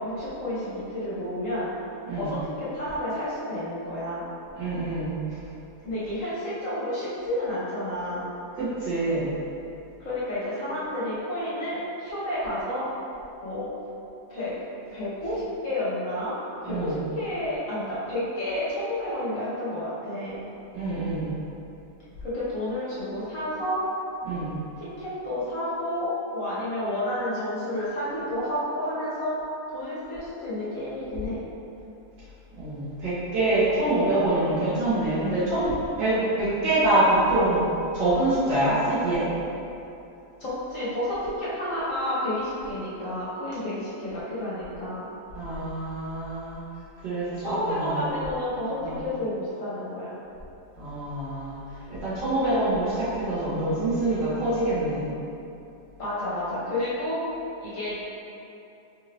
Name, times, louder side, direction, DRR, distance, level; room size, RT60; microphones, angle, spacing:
voice 1, 0.0-1.7 2.1-4.3 5.8-8.3 10.0-12.9 13.4-13.7 14.3-14.5 14.9-16.4 16.6-20.4 22.2-23.9 24.8-29.3 29.7-31.4 40.4-45.1 47.4-50.2 56.0-57.2 57.6-58.0, left 1 dB, 55° left, -10 dB, 1.2 m, -30 dB
voice 2, 4.6-5.4 8.6-9.3 16.7-17.0 20.7-21.3 24.2-24.6 32.6-37.6 37.9-39.3 45.3-46.6 47.0-48.1 48.8-49.0 50.8-55.1, right 1 dB, 85° right, -10 dB, 2.0 m, -25 dB
4.3 x 2.6 x 3.3 m, 2.8 s
omnidirectional pair, 1.9 m